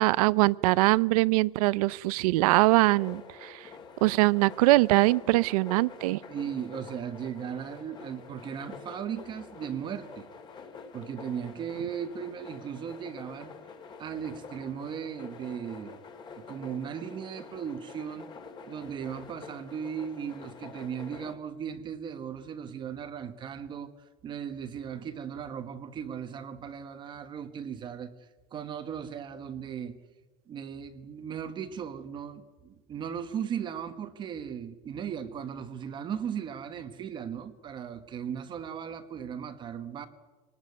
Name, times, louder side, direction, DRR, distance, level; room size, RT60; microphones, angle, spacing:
voice 1, 0.0-3.7 4.0-6.2, right 20 dB, 70° right, 20 dB, 0.7 m, -23 dB
sound 1, 2.9-21.3, left 5 dB, 20° left, 2.4 m, -47 dB
voice 2, 6.3-10.3 10.9-13.5 14.0-16.0 16.4-18.3 18.7-30.0 30.5-40.1, right 8 dB, 25° right, 9 dB, 1.1 m, -37 dB
25.5 x 19.0 x 9.5 m, 1.3 s
supercardioid pair, 165°, 20 cm